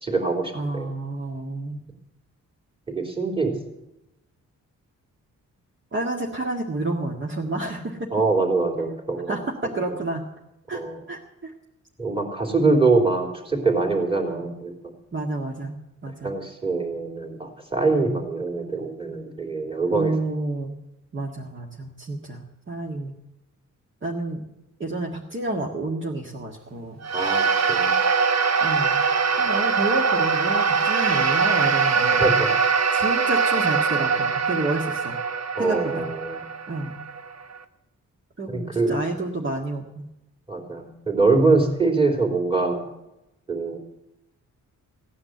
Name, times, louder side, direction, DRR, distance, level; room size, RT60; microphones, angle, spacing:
voice 1, 0.0-0.9 2.9-3.6 8.1-9.4 10.7-11.0 12.0-14.7 16.2-20.1 27.1-28.0 32.1-32.5 35.6-36.4 38.5-39.0 40.5-42.9 43.5-43.8, right 3 dB, 15° right, 2 dB, 3.4 m, -23 dB
voice 2, 0.5-1.8 5.9-8.1 9.3-10.2 10.7-10.8 11.1-11.5 12.6-12.9 15.1-16.3 19.9-20.8 21.1-23.1 24.0-24.5 24.8-27.0 28.6-29.0 29.4-32.3 32.9-35.2 35.6-36.1 36.7-37.0 38.4-40.1, right 2 dB, 35° right, -2 dB, 1.9 m, -30 dB
sound 1, 27.0-37.6, right 5 dB, 55° right, 1.2 m, -22 dB
16.5 x 9.7 x 7.9 m, 0.92 s
wide cardioid pair, 115°, 32 cm